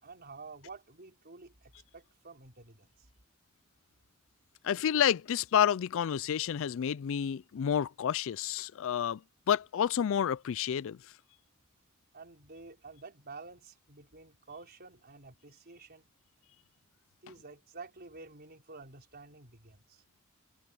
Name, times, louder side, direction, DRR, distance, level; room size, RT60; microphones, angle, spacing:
voice 1, 0.0-3.1 12.1-16.1 17.2-20.0, right 3 dB, 50° right, 4.3 m, -50 dB
voice 2, 4.6-9.2 9.5-11.0, left 9 dB, 65° left, 0.4 m, -29 dB
head